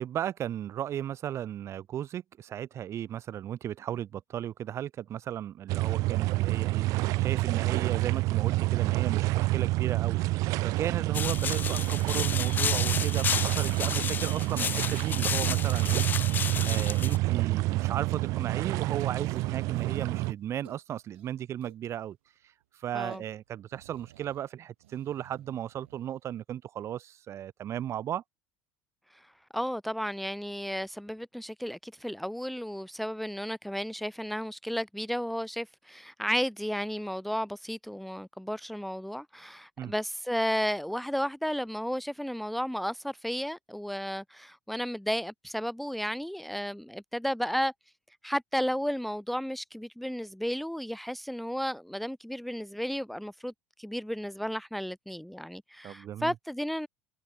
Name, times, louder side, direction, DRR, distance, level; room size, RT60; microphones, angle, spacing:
voice 1, 0.0-16.0 16.7-22.2 22.4-22.5 22.8-28.2 39.8-39.9 55.8-56.3, right 10 dB, 50° right, 6.4 m, -35 dB
sound 1, 5.7-20.3, right 20 dB, 65° right, 0.7 m, -28 dB
sound 2, 7.0-7.1 7.5-9.0 9.4-10.2 10.6-12.1 12.6-13.3 13.7-15.1 15.5-16.4 16.8-17.7 18.2-18.4 18.7-18.8 19.0-19.9 20.2-20.3 20.6-21.9 22.2-22.3 22.6-22.7 22.9-24.4 24.8-26.0, right 16 dB, 85° right, 5.3 m, -56 dB
sound 3, 11.1-17.2, left 7 dB, 30° left, 0.4 m, -32 dB
voice 2, 29.1-47.7 48.2-53.5 53.8-56.9, equal, ahead, 0.9 m, -33 dB
hypercardioid pair, 85°, 6 cm